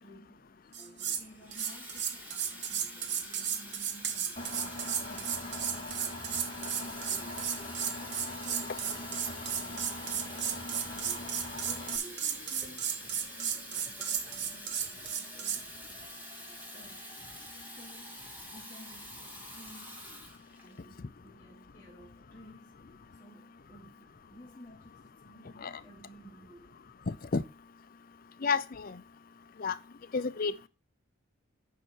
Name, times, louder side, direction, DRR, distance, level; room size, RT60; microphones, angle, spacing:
voice 1, 0.0-15.7 16.5-17.1 17.6-20.1 20.6-22.7 23.2-26.8, right 1 dB, 10° left, 1.7 m, -56 dB
sound 1, 0.7-1.2 1.5-15.6, right 8 dB, 55° right, 1.0 m, -34 dB
Water tap faucet / Fill (with liquid), 1.1-20.8, equal, 10° right, 2.1 m, -46 dB
Engine, 4.4-12.0, left 1 dB, 25° left, 1.6 m, -42 dB
voice 2, 27.1-27.4 28.4-29.0 29.6-29.8 30.1-30.7, left 4 dB, 45° left, 0.5 m, -31 dB
9.4 x 5.7 x 4.4 m
head